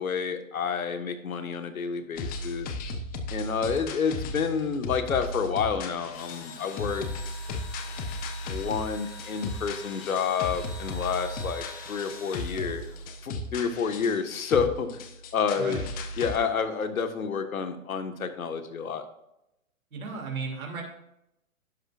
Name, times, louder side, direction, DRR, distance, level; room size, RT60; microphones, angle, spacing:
voice 1, 0.0-2.7 3.3-7.1 8.5-12.8 13.2-15.0 15.3-15.8 16.2-19.0, left 6 dB, 80° left, 8 dB, 1.7 m, -29 dB
sound 1, 2.2-16.4, left 2 dB, 20° left, 1.1 m, -36 dB
Engine / Drill, 6.1-13.4, left 4 dB, 45° left, 2.6 m, -45 dB
voice 2, 15.6-15.9 19.9-20.8, right 5 dB, 80° right, 0 dB, 3.2 m, -35 dB
12.0 x 10.5 x 2.6 m, 0.83 s
hypercardioid pair, 135°, 41 cm